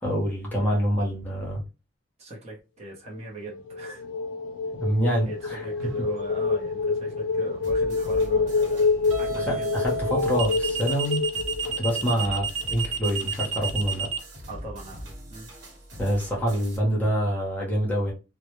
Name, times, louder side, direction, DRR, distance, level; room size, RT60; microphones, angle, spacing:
voice 1, 0.0-1.6 4.8-5.6 9.3-11.2 11.8-12.4 12.7-14.1 16.0-18.1, equal, 10° left, 0.7 m, -26 dB
voice 2, 0.6-0.9 2.2-4.1 5.3-8.9 9.2-10.0 12.2-12.4 14.5-15.5, right 2 dB, 35° right, 0.7 m, -41 dB
sound 1, 3.5-12.4, left 4 dB, 75° left, 0.4 m, -27 dB
sound 2, 5.8-6.1 9.1-14.2, right 5 dB, 80° right, 0.5 m, -30 dB
sound 3, 7.6-16.8, equal, 65° right, 1.1 m, -42 dB
2.1 x 2.0 x 2.9 m
head